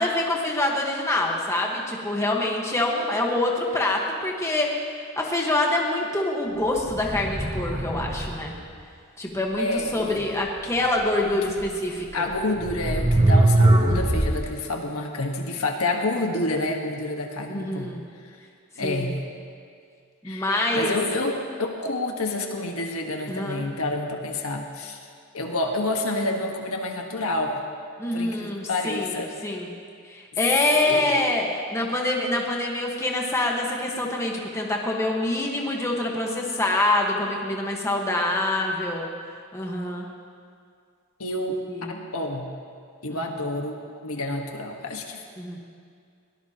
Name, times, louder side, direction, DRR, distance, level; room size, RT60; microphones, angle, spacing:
voice 1, 0.0-4.9 5.2-8.5 9.2-9.7 9.9-12.3 17.5-18.0 18.8-19.1 20.2-21.0 23.3-23.7 28.0-29.2 29.4-29.7 30.1-39.1 39.5-40.1 41.7-41.9 43.1-43.3 45.4-45.6, left 1 dB, 15° left, -1 dB, 1.5 m, -25 dB
sound 1, 6.8-8.5 11.6-11.7 12.6-14.4, right 1 dB, 20° right, 1.0 m, -21 dB
voice 2, 9.6-10.3 11.5-11.6 12.1-18.0 18.8-19.2 20.2-25.0 25.3-27.6 28.1-29.3 30.8-31.1 41.2-41.6 41.9-42.5 43.0-45.2, left 2 dB, 75° left, 2 dB, 1.5 m, -28 dB
21.5 x 18.0 x 3.0 m, 2.2 s
head